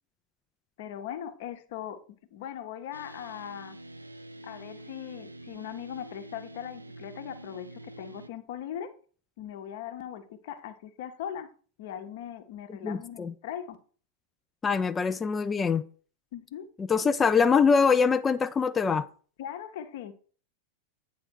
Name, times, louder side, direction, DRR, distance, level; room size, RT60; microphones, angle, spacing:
voice 1, 0.8-2.0 2.3-3.8 4.4-8.9 9.4-11.5 11.8-13.8 16.3-16.7 19.4-20.1, left 10 dB, 50° left, 0.9 m, -39 dB
sound 1, 2.9-8.3, right 1 dB, 80° right, 0.5 m, -46 dB
voice 2, 12.8-13.3 14.6-15.8 16.8-19.1, left 5 dB, 20° left, 0.4 m, -24 dB
8.8 x 3.9 x 6.2 m
figure-of-eight pair, 90°, 0 cm